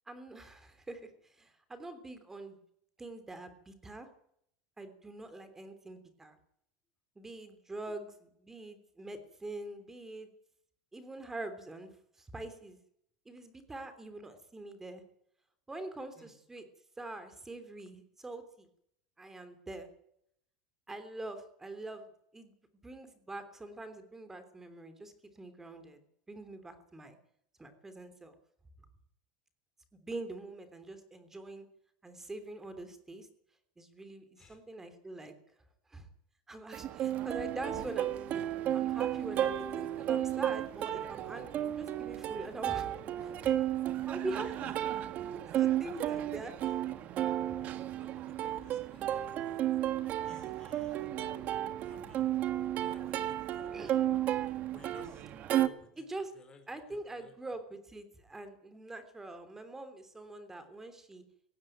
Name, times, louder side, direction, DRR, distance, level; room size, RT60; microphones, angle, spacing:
voice 1, 0.1-2.6 3.0-4.1 4.8-6.4 7.1-10.3 10.9-11.9 12.2-12.8 13.2-15.0 15.7-16.6 17.0-18.7 19.2-19.9 20.9-22.5 22.8-26.0 26.3-27.2 27.6-28.4 30.0-31.7 32.0-33.3 33.8-35.3 35.9-36.1 36.5-38.4 38.7-42.9 43.4-43.5 44.1-44.8 45.6-46.5 47.5-47.6 53.7-54.0 56.0-56.3 56.7-61.2, right 2 dB, 10° right, 9 dB, 3.2 m, -44 dB
Plucked string instrument, 36.7-55.7, right 12 dB, 40° right, 1.5 m, -33 dB
voice 2, 45.8-46.2 46.6-46.7 47.6-49.6 50.2-51.0 51.8-52.2 52.8-54.0 54.7-57.3, left 4 dB, 20° left, 6 dB, 4.5 m, -58 dB
18.0 x 17.0 x 9.3 m, 0.72 s
supercardioid pair, 145°, 4 cm